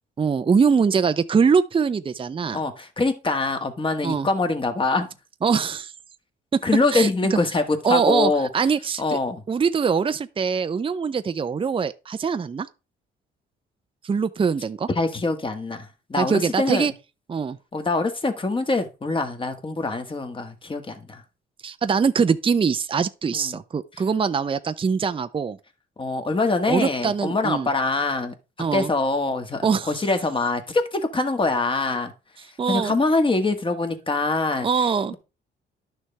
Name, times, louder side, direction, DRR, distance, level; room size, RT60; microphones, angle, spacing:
voice 1, 0.2-2.6 4.0-4.3 5.4-5.9 6.5-6.6 6.9-7.4 7.8-9.2 9.5-12.7 14.0-14.9 16.2-16.9 17.3-17.6 21.6-25.6 26.7-27.7 28.6-28.9 29.6-29.9 32.6-33.0 34.6-35.1, right 6 dB, 25° right, 0.6 m, -23 dB
voice 2, 2.5-5.1 6.6-8.7 9.0-9.4 14.9-16.9 17.7-21.2 23.3-23.6 26.0-28.3 28.7-32.1 32.7-35.1, left 3 dB, 25° left, 1.6 m, -24 dB
11.0 x 6.4 x 3.4 m
cardioid pair, 90°, 20 cm